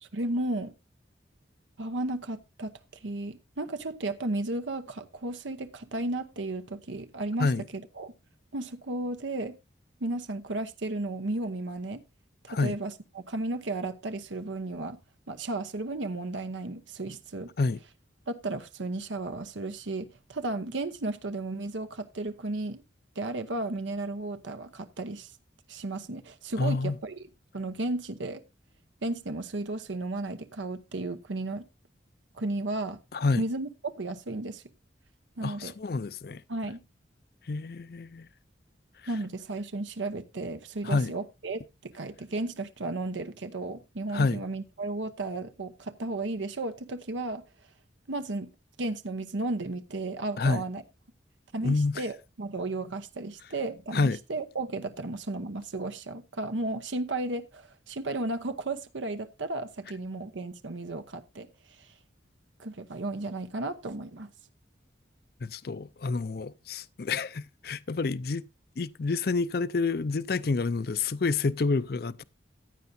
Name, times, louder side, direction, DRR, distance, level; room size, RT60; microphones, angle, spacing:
voice 1, 0.0-0.7 1.8-2.7 3.0-8.1 8.5-9.6 10.0-12.0 12.4-15.0 15.3-17.5 18.3-22.8 23.2-25.3 25.7-27.3 27.5-28.4 29.0-31.7 32.4-33.0 33.4-34.6 35.4-35.7 36.5-36.8 39.1-47.4 48.1-48.5 48.8-50.8 51.5-61.5 61.8-61.9 62.6-64.3, right 2 dB, 85° right, 0.9 m, -34 dB
voice 2, 26.6-27.0 33.1-33.4 35.4-36.4 37.5-38.3 40.8-41.1 44.1-44.4 50.4-50.6 51.6-52.0 53.9-54.2 65.4-68.4 68.8-72.2, left 3 dB, 55° left, 0.5 m, -28 dB
15.0 x 9.3 x 2.7 m
head